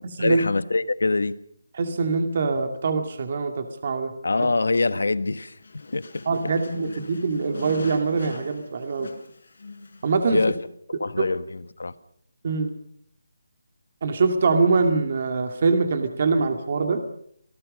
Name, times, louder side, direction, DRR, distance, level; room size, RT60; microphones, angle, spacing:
voice 1, 0.2-1.3 4.2-5.6 5.9-6.5 10.3-10.6 11.0-11.9, left 3 dB, 85° left, 13 dB, 1.5 m, -24 dB
voice 2, 1.8-4.1 6.3-9.1 10.0-10.4 11.2-11.3 12.4-12.7 14.0-17.0, right 4 dB, 35° right, 6 dB, 2.2 m, -23 dB
sound 1, 5.5-10.6, left 4 dB, 55° left, 4.9 m, -41 dB
27.5 x 19.0 x 5.5 m, 0.66 s
hypercardioid pair, 175°, 0 cm